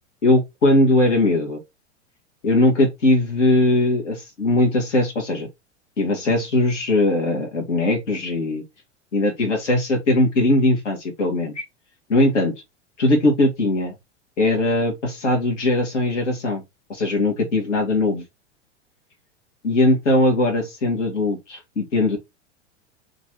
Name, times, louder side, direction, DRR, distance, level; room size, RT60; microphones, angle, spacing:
voice 1, 0.2-1.6 2.4-5.5 6.0-8.6 9.1-11.6 12.1-12.5 13.0-13.9 14.4-16.6 16.9-18.2 19.6-22.2, left 2 dB, 85° left, 1.4 m, -20 dB
3.0 x 2.6 x 4.3 m
hypercardioid pair, 95°, 35 cm